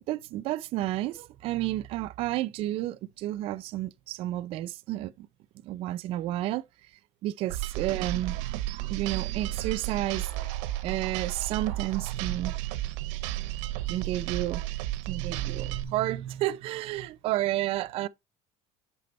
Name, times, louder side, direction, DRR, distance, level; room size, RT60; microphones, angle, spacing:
voice 1, 0.0-5.3 5.6-6.6 7.2-10.5 10.8-12.6 13.7-14.6 15.0-18.1, right 14 dB, 40° right, 0.4 m, -31 dB
sound 1, 7.5-15.8, right 16 dB, 80° right, 0.8 m, -33 dB
sound 2, 9.3-13.9 14.2-14.9, left 5 dB, 50° left, 2.4 m, -59 dB
6.7 x 4.2 x 4.1 m
cardioid pair, 170°, 16 cm